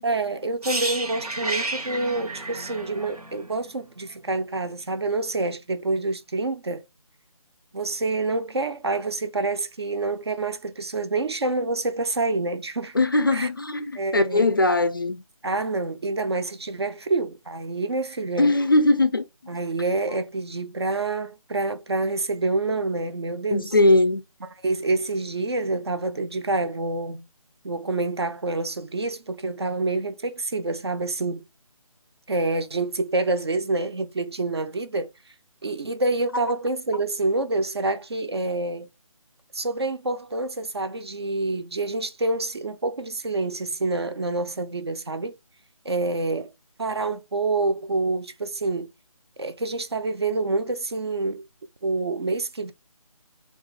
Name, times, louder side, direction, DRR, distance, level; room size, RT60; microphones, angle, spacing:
voice 1, 0.0-6.8 7.7-13.0 13.3-13.5 14.0-14.5 15.4-18.6 19.5-23.7 24.4-27.3 27.6-31.5 32.3-35.1 35.6-38.9 39.5-45.4 45.8-46.5 46.8-48.9 49.4-51.5 51.8-52.7, right 3 dB, 45° right, 0.5 m, -27 dB
sound 1, 0.6-4.5 4.7-4.9, right 2 dB, 90° right, 0.9 m, -32 dB
voice 2, 12.9-15.2 18.4-19.2 23.5-24.2, left 2 dB, 35° left, 0.4 m, -20 dB
3.8 x 2.3 x 3.9 m
figure-of-eight pair, 160°, 19 cm